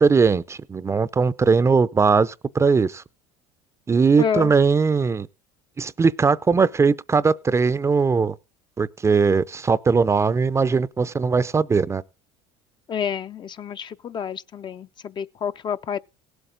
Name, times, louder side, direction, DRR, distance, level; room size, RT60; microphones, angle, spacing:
voice 1, 0.0-3.0 3.9-5.3 5.8-8.3 8.8-12.0, right 5 dB, 20° right, 0.5 m, -19 dB
voice 2, 4.2-4.5 12.9-16.0, left 7 dB, 35° left, 0.5 m, -28 dB
17.5 x 8.0 x 3.7 m
supercardioid pair, 90°, 13 cm